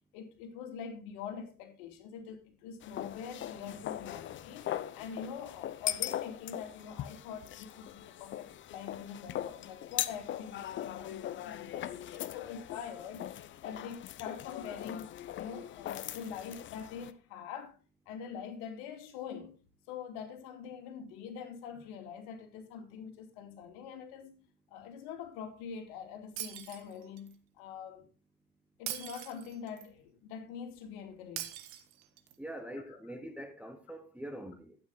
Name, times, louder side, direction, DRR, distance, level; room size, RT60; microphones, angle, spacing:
voice 1, 0.1-13.3 13.6-17.8 18.1-19.6 19.9-24.4 24.7-28.1 28.8-31.5 32.7-33.0, left 7 dB, 55° left, 2.8 m, -44 dB
sound 1, 2.8-17.1, left 12 dB, 25° left, 0.7 m, -40 dB
Shatter, 26.4-27.3 28.9-29.9 31.4-32.4, right 13 dB, 45° right, 1.5 m, -42 dB
voice 2, 32.4-34.8, right 1 dB, 5° right, 1.1 m, -44 dB
12.0 x 9.1 x 4.0 m
hypercardioid pair, 90°, 45 cm